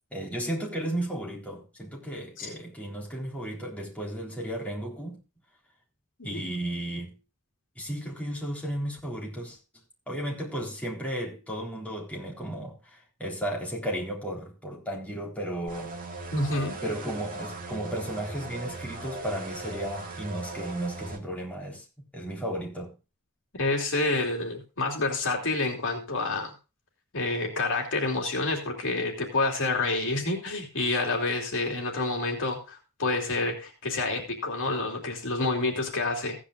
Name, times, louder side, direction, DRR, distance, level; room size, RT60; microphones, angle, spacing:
voice 1, 0.1-5.2 6.2-7.2 7.8-9.6 10.1-15.9 16.8-21.8 22.1-23.0, right 1 dB, 5° left, 3.8 m, -34 dB
sound 1, 15.7-21.2, right 2 dB, 40° right, 2.1 m, -39 dB
voice 2, 16.3-16.8 23.5-26.5 27.1-36.4, left 2 dB, 60° left, 3.1 m, -28 dB
16.0 x 10.0 x 2.5 m
head